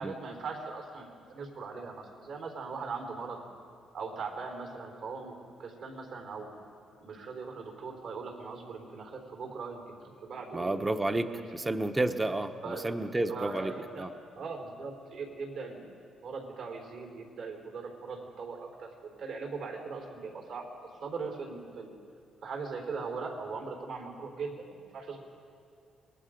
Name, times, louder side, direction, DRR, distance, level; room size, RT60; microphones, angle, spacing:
voice 1, 0.0-3.4 3.9-6.5 7.0-11.0 11.3-11.7 12.6-12.9 13.3-14.1 14.3-15.9 16.2-20.7 21.0-21.9 22.4-25.2, right 4 dB, 70° right, 2 dB, 3.9 m, -40 dB
voice 2, 10.5-13.7 14.0-14.1, right 2 dB, 15° right, 8 dB, 0.9 m, -31 dB
27.0 x 20.5 x 5.1 m, 2.4 s
cardioid pair, 90°, 0 cm